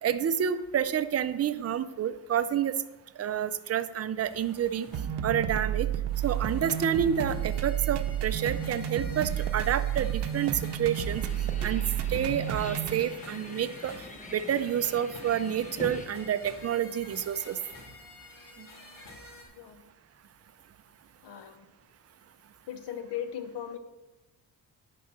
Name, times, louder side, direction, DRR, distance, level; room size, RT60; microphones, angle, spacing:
voice 1, 0.0-2.8 3.2-4.9 5.2-5.9 6.2-11.2 11.6-11.8 12.1-13.9 14.3-17.6, right 9 dB, 40° right, 11 dB, 0.5 m, -29 dB
sound 1, 4.2-19.4, left 2 dB, 55° left, 2.2 m, -49 dB
sound 2, 4.9-13.0, right 10 dB, 80° right, 0.7 m, -31 dB
sound 3, 10.9-16.1, left 2 dB, 20° left, 0.8 m, -44 dB
voice 2, 21.2-21.7 22.7-23.8, left 9 dB, 90° left, 9 dB, 1.0 m, -38 dB
10.5 x 4.6 x 6.2 m, 1.1 s
cardioid pair, 120°, 40 cm